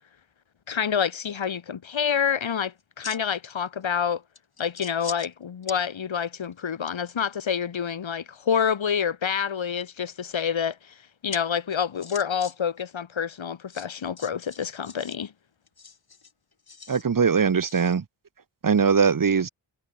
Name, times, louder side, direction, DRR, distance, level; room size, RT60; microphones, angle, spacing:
voice 1, 0.7-4.2 4.6-11.0 11.2-15.3, left 7 dB, 80° left, 5.9 m, -27 dB
sound 1, 2.1-2.3 2.8-3.5 3.8-3.9 4.3-5.3 5.6-5.8 6.3-7.1 9.3-9.8 11.3-11.4 11.7-12.5 12.8-12.9 13.7-15.2 15.7-17.0 17.6-17.9, left 5 dB, 55° left, 4.4 m, -42 dB
voice 2, 16.9-18.0 18.6-19.5, right 6 dB, 45° right, 1.3 m, -21 dB
cardioid pair, 60°, 46 cm